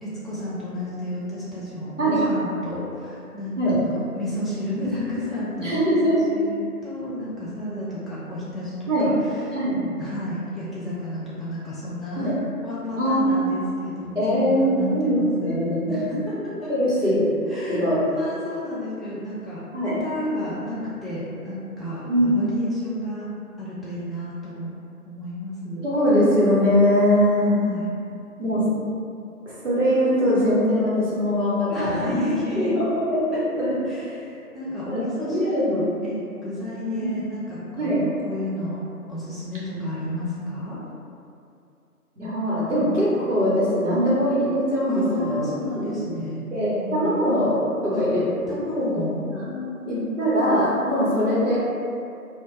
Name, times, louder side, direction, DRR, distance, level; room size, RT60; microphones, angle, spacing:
voice 1, 0.0-5.8 6.0-12.3 12.6-16.7 17.5-23.3 23.6-24.7 25.1-25.9 27.1-27.9 31.7-32.7 33.3-33.4 33.9-38.8 39.1-40.8 44.9-47.1 47.9-48.0 48.5-50.1, left 1 dB, ahead, -11 dB, 0.4 m, -32 dB
voice 2, 5.6-6.2 8.9-9.1 9.5-9.7 12.2-12.3 13.0-13.6 14.1-16.0 16.7-17.3 17.7-18.1 19.7-19.9 22.1-22.4 25.8-27.6 28.4-28.7 29.5-32.2 32.5-33.7 34.8-35.9 37.0-37.1 37.8-38.0 42.2-45.5 45.8-46.2 46.5-47.5 47.8-48.2 48.7-48.9 49.3-49.5 49.9-51.6, equal, 55° right, -9 dB, 0.9 m, -22 dB
2.2 x 2.0 x 3.0 m, 2.5 s
figure-of-eight pair, 165°, 45 cm